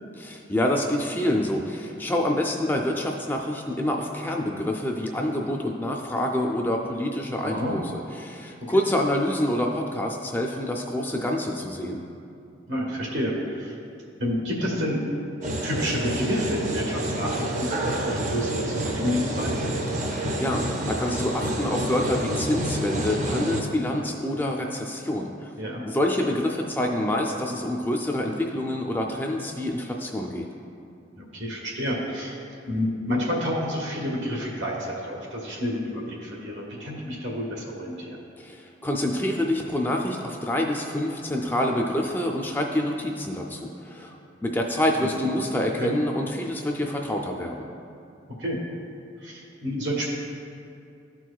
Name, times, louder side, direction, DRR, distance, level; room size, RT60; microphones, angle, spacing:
voice 1, 0.2-7.8 8.2-12.0 20.1-25.5 25.9-30.5 38.4-44.2 44.4-47.7, left 1 dB, 10° left, 1 dB, 0.4 m, -27 dB
voice 2, 12.7-13.7 14.2-15.1 15.6-19.7 24.0-24.1 25.6-25.8 31.2-32.4 32.6-38.2 45.0-45.1 45.8-45.9 48.4-48.6 49.2-50.1, equal, 80° right, -2 dB, 1.4 m, -29 dB
sound 1, 15.4-23.6, right 1 dB, 40° right, 0.7 m, -28 dB
13.0 x 4.5 x 2.3 m, 2.5 s
head